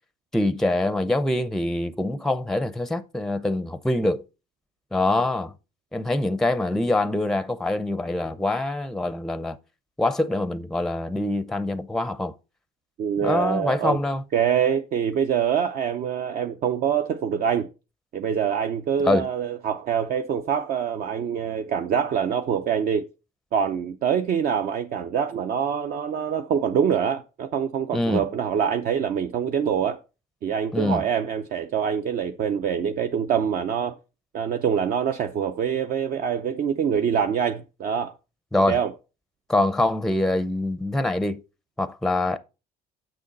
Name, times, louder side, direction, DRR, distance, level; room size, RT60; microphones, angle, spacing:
voice 1, 0.3-4.2 4.9-5.5 5.9-9.6 10.0-12.3 13.2-14.2 19.0-19.3 27.9-28.2 30.7-31.0 38.5-38.8 39.5-41.4 41.8-42.4, left 2 dB, 5° left, 0.5 m, -24 dB
voice 2, 13.0-14.0 14.3-17.7 18.1-23.0 23.5-30.0 30.4-34.0 34.3-38.1 38.7-38.9, right 8 dB, 60° right, 0.6 m, -25 dB
6.7 x 6.3 x 4.0 m
cardioid pair, 110°, 17 cm